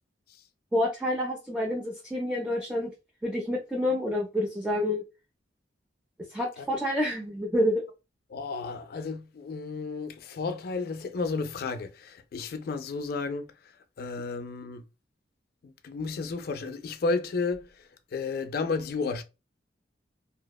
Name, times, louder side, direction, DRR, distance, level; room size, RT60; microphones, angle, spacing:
voice 1, 0.7-2.9 3.2-5.0 6.3-7.8, left 1 dB, 5° right, 0.4 m, -28 dB
voice 2, 8.3-14.8 15.6-19.2, left 4 dB, 55° left, 0.4 m, -33 dB
2.7 x 2.1 x 2.2 m
head